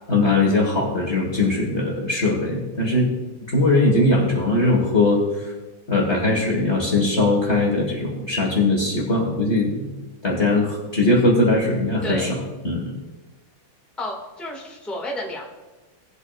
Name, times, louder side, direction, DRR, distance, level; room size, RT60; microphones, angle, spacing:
voice 1, 0.1-3.1 3.5-5.5 5.9-9.9 10.2-12.4 12.6-12.9, left 2 dB, 35° left, -2 dB, 1.7 m, -20 dB
voice 2, 14.0-15.4, left 1 dB, ahead, -2 dB, 1.6 m, -31 dB
18.5 x 8.1 x 2.4 m, 1.1 s
omnidirectional pair, 2.3 m